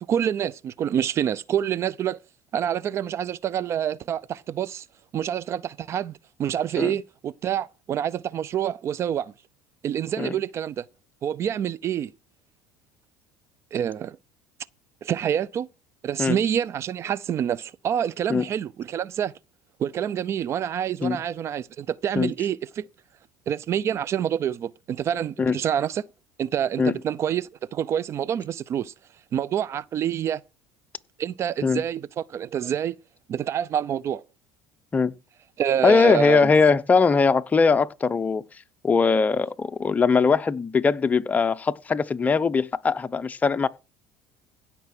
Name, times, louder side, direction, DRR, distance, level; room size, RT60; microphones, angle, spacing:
voice 1, 0.0-2.2 2.5-4.9 5.1-9.3 9.8-10.8 11.2-12.1 13.7-14.2 15.0-15.7 16.0-19.3 19.8-22.8 23.5-26.1 26.4-28.9 29.3-30.4 31.2-33.0 33.3-34.2 35.6-36.5, right 9 dB, 45° right, 0.5 m, -27 dB
voice 2, 35.8-38.4 38.8-43.7, left 5 dB, 25° left, 0.8 m, -21 dB
16.0 x 5.7 x 6.0 m
supercardioid pair, 95°, 7 cm